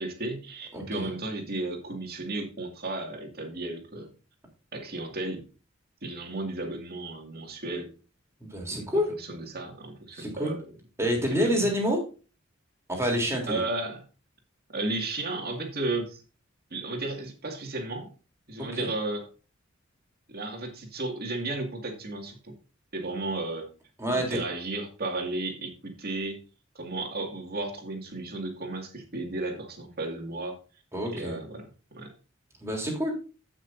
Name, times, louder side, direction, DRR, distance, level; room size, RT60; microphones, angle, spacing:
voice 1, 0.0-4.1 4.7-5.4 6.0-7.9 8.7-10.7 11.2-11.7 13.5-14.0 14.7-16.2 16.7-18.1 18.5-19.2 20.3-22.5 22.9-23.7 24.1-26.4 26.8-30.6 31.1-32.1, right 2 dB, 50° right, 3 dB, 2.2 m, -34 dB
voice 2, 0.7-1.1 8.4-9.1 10.1-10.5 11.0-12.0 12.9-13.6 18.7-18.9 24.0-24.4 30.9-31.4 32.6-33.1, equal, 15° right, 0 dB, 3.3 m, -28 dB
15.0 x 6.2 x 2.6 m, 0.34 s
head